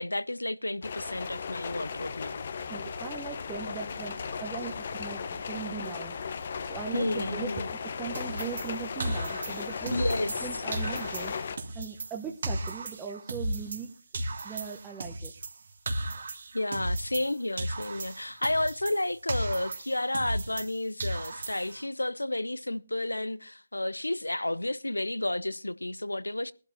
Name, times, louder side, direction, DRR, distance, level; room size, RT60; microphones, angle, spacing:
voice 1, 0.0-2.5 6.9-7.7 9.9-10.5 16.5-26.5, left 1 dB, 85° left, 0.6 m, -31 dB
sound 1, 0.8-11.6, left 6 dB, 45° left, 0.9 m, -36 dB
voice 2, 2.7-6.2 6.6-10.0 10.4-11.4 11.7-13.9 14.4-15.3, right 7 dB, 10° right, 0.9 m, -39 dB
sound 2, 8.1-10.5 10.7-13.9 14.1-17.3 17.6-20.7 21.0-21.8, right 1 dB, 55° right, 1.8 m, -35 dB
20.5 x 12.0 x 2.7 m
figure-of-eight pair, 150°, 0 cm